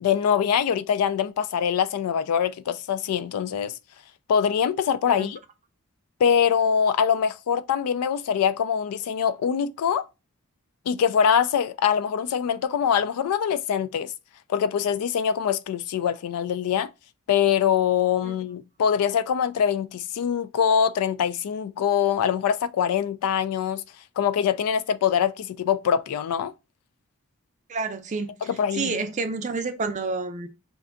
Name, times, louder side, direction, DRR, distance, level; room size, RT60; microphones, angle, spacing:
voice 1, 0.0-3.7 4.3-5.4 6.2-10.1 10.9-14.1 14.5-16.9 17.3-23.8 24.2-26.5 28.5-29.0, left 8 dB, 80° left, 0.3 m, -23 dB
voice 2, 27.7-28.3 28.7-30.5, right 4 dB, 35° right, 0.4 m, -29 dB
2.6 x 2.2 x 3.6 m
head